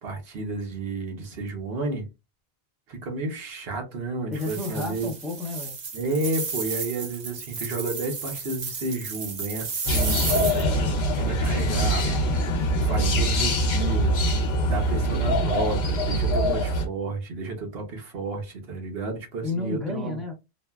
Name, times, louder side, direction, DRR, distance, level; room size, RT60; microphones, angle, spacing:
voice 1, 0.0-2.1 2.9-5.1 5.9-12.0 12.8-20.2, right 3 dB, 65° right, 1.0 m, -32 dB
voice 2, 4.3-5.8 19.4-20.3, left 3 dB, ahead, 0.4 m, -31 dB
sound 1, 4.3-10.6, right 5 dB, 45° right, 0.7 m, -33 dB
sound 2, 9.8-16.8, equal, 65° left, 0.9 m, -23 dB
3.1 x 2.2 x 2.2 m
omnidirectional pair, 1.2 m